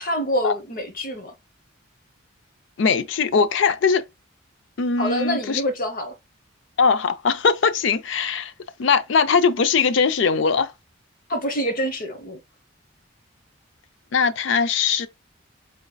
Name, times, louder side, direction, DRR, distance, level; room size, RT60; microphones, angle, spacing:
voice 1, 0.0-1.3 5.0-6.1 11.3-12.4, equal, 45° left, 0.9 m, -26 dB
voice 2, 2.8-4.0 4.8-5.6 6.8-8.5 8.8-10.7 14.1-15.1, left 5 dB, 65° left, 0.4 m, -20 dB
4.2 x 4.0 x 2.2 m
head